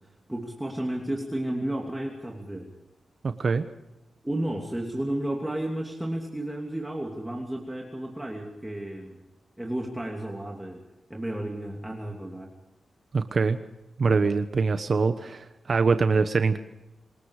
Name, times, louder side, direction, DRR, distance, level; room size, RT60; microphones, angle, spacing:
voice 1, 0.3-2.7 4.2-9.2 9.6-10.8 11.1-12.5, right 1 dB, 10° right, 0 dB, 2.9 m, -32 dB
voice 2, 13.1-13.6 14.0-16.6, right 4 dB, 50° right, 9 dB, 1.1 m, -23 dB
27.5 x 20.0 x 4.9 m, 0.98 s
wide cardioid pair, 105°, 0 cm